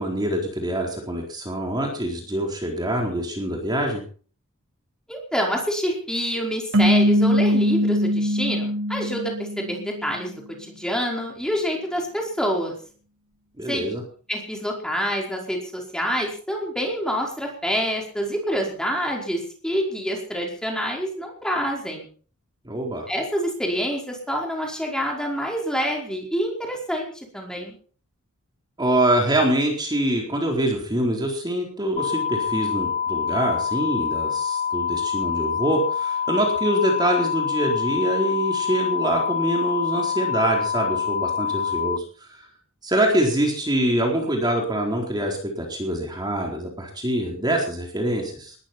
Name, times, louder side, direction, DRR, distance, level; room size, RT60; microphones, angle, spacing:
voice 1, 0.0-4.0 13.6-14.0 22.6-23.1 28.8-42.5 42.8-48.6, right 1 dB, 20° right, 0 dB, 4.2 m, -24 dB
voice 2, 5.1-10.3 10.6-12.7 13.7-13.9 14.3-22.1 23.1-27.7, equal, 5° left, 0 dB, 5.0 m, -27 dB
sound 1, 6.7-10.1, equal, 60° right, 1.1 m, -21 dB
sound 2, 32.0-42.0, left 7 dB, 30° left, 0.8 m, -26 dB
20.5 x 14.5 x 4.5 m, 0.43 s
head